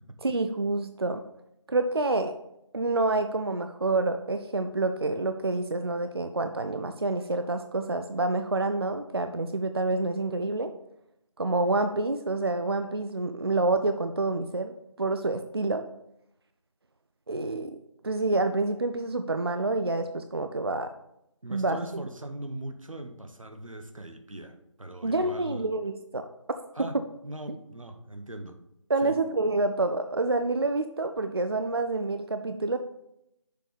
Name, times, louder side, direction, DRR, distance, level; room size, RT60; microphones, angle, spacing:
voice 1, 0.2-1.2 1.7-2.3 2.7-10.7 11.4-15.8 17.3-17.8 18.0-20.9 21.5-21.8 25.0-26.3 28.9-32.8, right 2 dB, 50° right, 8 dB, 0.4 m, -28 dB
voice 2, 21.4-25.7 26.7-27.0 27.2-28.6 29.0-29.2, right 1 dB, 85° right, 7 dB, 1.0 m, -40 dB
6.6 x 4.1 x 4.9 m, 0.82 s
figure-of-eight pair, 165°, 17 cm